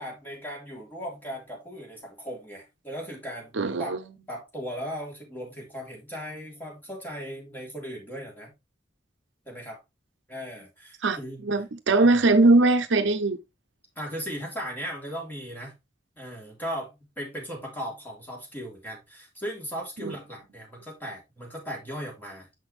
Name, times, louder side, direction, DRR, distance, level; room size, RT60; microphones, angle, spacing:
voice 1, 0.0-4.0 4.3-8.5 9.4-9.8 10.3-11.5 12.0-12.1 13.9-15.7 16.2-22.5, equal, 10° left, 3.2 m, -37 dB
voice 2, 3.6-4.0 11.0-13.4 20.0-20.1, right 2 dB, 75° right, 0.8 m, -21 dB
6.8 x 6.2 x 3.2 m
head